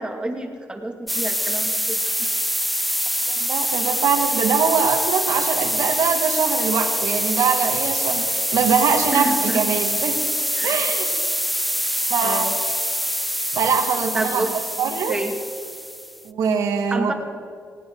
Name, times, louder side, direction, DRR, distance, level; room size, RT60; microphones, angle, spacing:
voice 1, 0.0-2.3 9.1-9.6 10.6-10.9 12.2-12.6 14.1-14.5 15.1-15.3 16.9-17.1, right 1 dB, 15° right, 2 dB, 2.2 m, -29 dB
sound 1, 1.1-16.2, equal, ahead, 0.5 m, -25 dB
voice 2, 3.3-10.2 10.6-11.1 12.1-12.5 13.5-15.2 16.2-17.1, right 6 dB, 85° right, 4 dB, 2.0 m, -22 dB
20.5 x 17.0 x 3.9 m, 2.3 s
cardioid pair, 100°, 6 cm